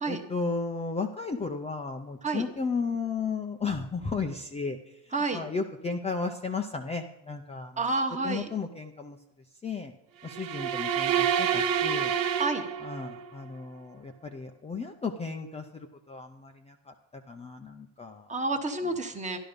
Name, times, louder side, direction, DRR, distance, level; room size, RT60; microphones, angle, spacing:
voice 1, 0.1-4.8 5.3-7.9 8.2-9.2 9.6-9.9 10.2-12.1 12.8-16.9 17.3-18.3, left 4 dB, 15° left, 3 dB, 0.5 m, -34 dB
voice 2, 7.8-8.5 12.4-12.6 18.3-19.4, right 3 dB, 15° right, 5 dB, 1.2 m, -29 dB
sound 1, 10.3-13.3, right 8 dB, 45° right, 1.0 m, -28 dB
12.0 x 12.0 x 5.2 m, 0.91 s
cardioid pair, 160°, 47 cm